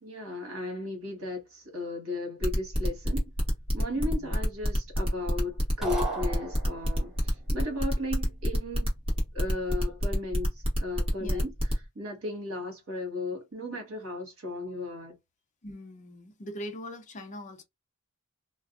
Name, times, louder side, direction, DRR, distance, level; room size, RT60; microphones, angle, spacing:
voice 1, 0.0-3.3 3.7-8.9 9.3-11.5 11.9-15.1, left 2 dB, 65° right, 1.3 m, -35 dB
sound 1, 2.4-11.7, equal, 25° right, 1.0 m, -27 dB
voice 2, 4.0-4.3 11.2-11.4 15.6-17.6, equal, 35° left, 0.5 m, -41 dB
sound 2, 5.8-7.1, right 3 dB, ahead, 1.1 m, -35 dB
2.4 x 2.2 x 2.4 m
head